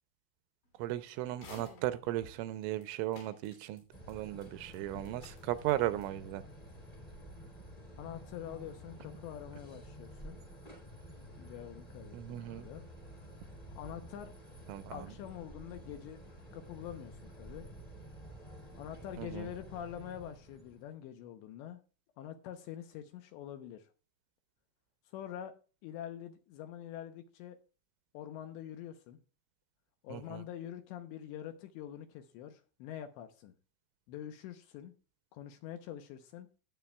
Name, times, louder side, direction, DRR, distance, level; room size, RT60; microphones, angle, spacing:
voice 1, 0.8-3.8 4.1-6.4 12.1-12.7 14.7-15.1 19.2-19.5 30.1-30.4, right 14 dB, 85° right, 3.0 m, -36 dB
sound 1, 1.3-2.4 2.8-2.9 3.1-4.1 4.4-4.5 4.7-5.7 6.0-6.1, left 2 dB, 65° left, 5.0 m, -52 dB
sound 2, 3.9-20.9, equal, 15° left, 1.6 m, -51 dB
voice 2, 8.0-10.4 11.4-12.8 13.8-14.3 14.9-16.2 16.5-17.7 18.7-21.8 22.2-23.9 25.1-25.5 25.8-27.6 28.1-29.2 30.0-33.6 34.1-34.9 35.3-36.5, left 10 dB, 80° left, 2.7 m, -45 dB
18.5 x 7.6 x 2.3 m
omnidirectional pair, 5.7 m